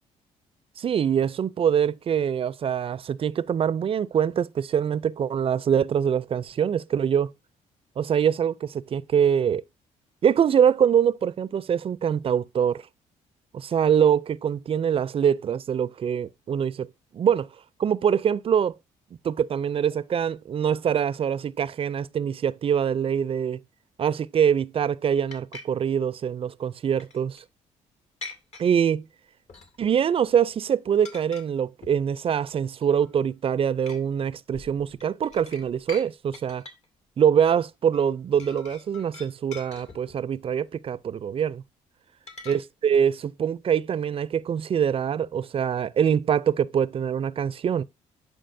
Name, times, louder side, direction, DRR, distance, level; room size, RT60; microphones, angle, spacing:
voice 1, 0.8-7.3 8.0-9.6 10.2-12.8 13.5-16.9 17.1-17.5 17.8-18.8 19.2-23.6 24.0-27.4 28.6-29.1 29.8-36.6 37.2-41.6 42.5-47.8, right 8 dB, 45° right, 0.5 m, -24 dB
sound 1, 25.3-25.6 27.0-27.4 28.2-28.7 29.5-30.0 30.3-30.6 31.0-31.5 31.8-32.1 32.6-33.1 33.9-34.0 34.5-36.1 36.3-36.9 37.9-38.1 38.4-40.3 42.3-42.6, left 3 dB, 55° left, 2.0 m, -43 dB
11.5 x 5.1 x 2.6 m
cardioid pair, 80°, 13 cm